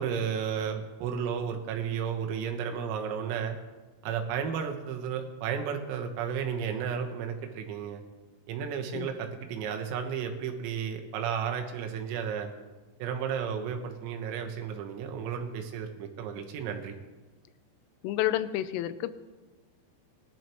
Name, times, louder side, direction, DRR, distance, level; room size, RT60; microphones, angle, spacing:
voice 1, 0.0-3.6 4.0-8.0 8.5-12.5 13.0-17.0, right 7 dB, 90° right, 4 dB, 4.0 m, -33 dB
voice 2, 18.0-19.1, left 13 dB, 85° left, 13 dB, 3.2 m, -29 dB
21.5 x 12.0 x 3.0 m, 1.3 s
omnidirectional pair, 5.9 m